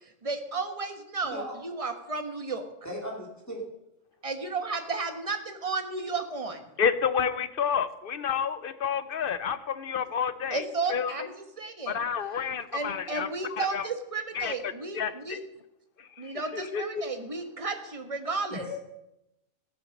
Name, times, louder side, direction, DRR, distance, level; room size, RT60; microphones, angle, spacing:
voice 1, 0.2-2.7 4.2-6.6 10.5-12.0 12.7-15.4 16.2-18.8, right 3 dB, 25° right, 6 dB, 1.2 m, -33 dB
voice 2, 1.2-1.6 2.8-3.6 18.5-18.8, left 1 dB, 10° left, -2 dB, 2.4 m, -37 dB
voice 3, 6.8-10.6 10.9-11.1 11.9-13.8 14.3-15.4 16.0-17.0, left 7 dB, 50° left, 13 dB, 0.7 m, -30 dB
14.5 x 8.0 x 6.4 m, 0.90 s
omnidirectional pair, 1.5 m